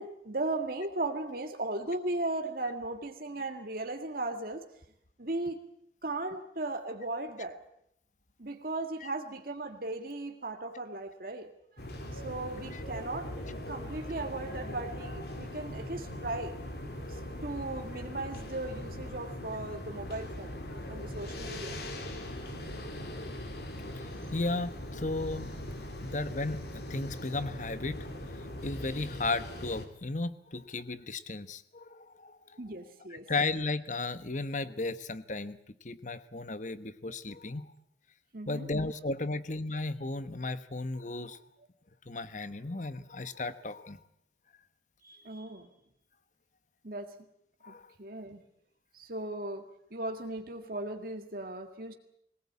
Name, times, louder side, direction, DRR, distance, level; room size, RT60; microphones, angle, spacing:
voice 1, 0.0-4.6 5.2-5.7 6.0-7.6 8.4-11.5 12.1-16.6 17.1-20.6 20.9-21.8 32.6-33.3 38.3-38.7 45.0-45.7 46.8-47.2 47.7-48.4 48.9-51.9, right 2 dB, 50° right, 5 dB, 1.9 m, -37 dB
sound 1, 11.8-29.8, left 1 dB, 60° left, 3.1 m, -40 dB
voice 2, 24.3-25.6 26.0-28.0 28.6-32.6 33.1-37.7 38.5-41.4 42.1-44.0 47.6-47.9, left 3 dB, 45° left, 13 dB, 1.1 m, -35 dB
21.5 x 19.5 x 8.6 m, 0.72 s
head